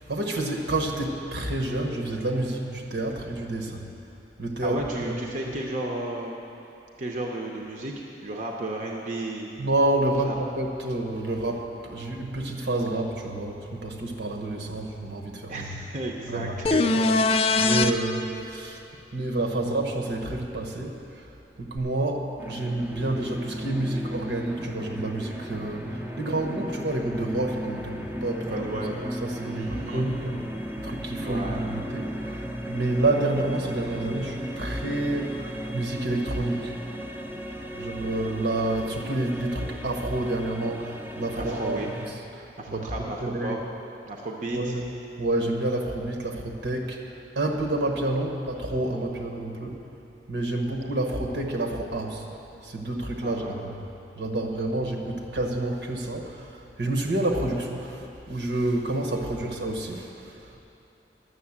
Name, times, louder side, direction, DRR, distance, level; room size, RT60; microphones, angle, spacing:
voice 1, 0.0-3.9 4.4-5.2 9.6-15.7 16.3-16.5 16.8-16.9 17.6-18.8 19.1-21.3 21.6-28.7 29.2-30.3 30.8-36.8 37.7-41.8 42.4-43.5 44.5-44.8 45.2-49.8 50.3-52.3 52.6-53.7 54.1-60.6, right 2 dB, 75° right, 1 dB, 1.3 m, -29 dB
voice 2, 4.6-6.4 7.0-7.9 8.2-9.5 10.2-10.4 15.5-17.5 28.4-29.0 29.4-30.0 31.2-31.6 41.4-41.9 42.6-43.6 44.1-44.7 53.2-53.6, right 1 dB, 45° right, 0 dB, 0.8 m, -33 dB
sound 1, 16.6-17.9 21.8-21.9, left 3 dB, 35° left, 0.3 m, -21 dB
sound 2, 22.4-42.1, equal, 10° right, 0.6 m, -36 dB
11.0 x 7.1 x 7.2 m, 2.8 s
head